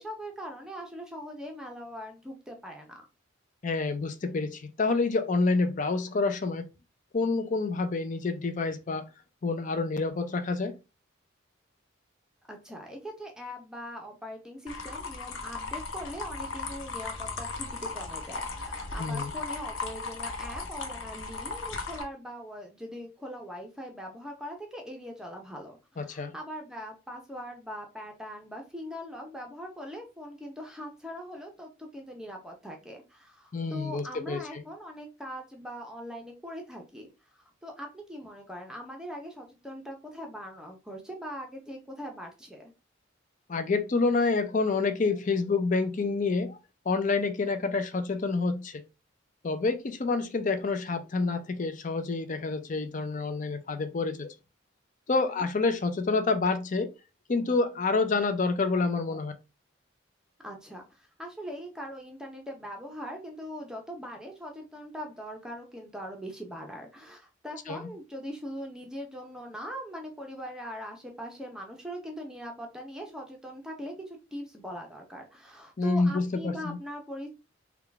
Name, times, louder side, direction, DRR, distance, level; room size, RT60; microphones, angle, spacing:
voice 1, 0.0-3.0 12.5-42.7 55.3-55.4 60.4-77.3, equal, 5° right, 0.7 m, -41 dB
voice 2, 3.6-6.7 7.1-9.1 9.4-10.8 19.0-19.3 26.0-26.3 33.5-34.6 43.5-46.6 46.9-48.8 49.4-54.3 55.1-56.9 57.3-59.3 67.7-67.9 75.8-76.8, left 3 dB, 40° left, 0.5 m, -28 dB
sound 1, 14.7-22.0, left 3 dB, 85° left, 0.7 m, -37 dB
3.7 x 2.3 x 3.4 m
head